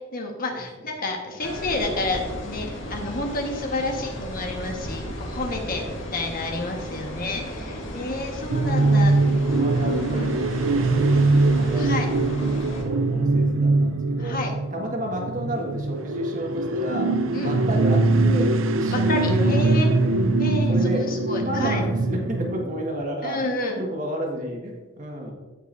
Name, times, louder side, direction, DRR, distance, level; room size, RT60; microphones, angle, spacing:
voice 1, 0.1-9.2 9.5-10.3 11.7-12.1 14.2-14.5 17.3-17.5 18.9-19.9 20.4-21.8 23.2-23.8, left 2 dB, 45° left, 1 dB, 1.4 m, -30 dB
sound 1, 1.4-12.8, equal, 75° left, 1.9 m, -35 dB
voice 2, 5.6-5.9 7.0-8.1 8.9-9.0 9.4-11.9 12.7-14.4 14.7-20.1 20.7-21.1 21.4-23.5 23.8-25.3, equal, 40° right, 0 dB, 1.6 m, -32 dB
sound 2, 8.5-22.6, right 2 dB, 80° right, 0.5 m, -22 dB
16.0 x 5.4 x 2.6 m, 1.3 s
head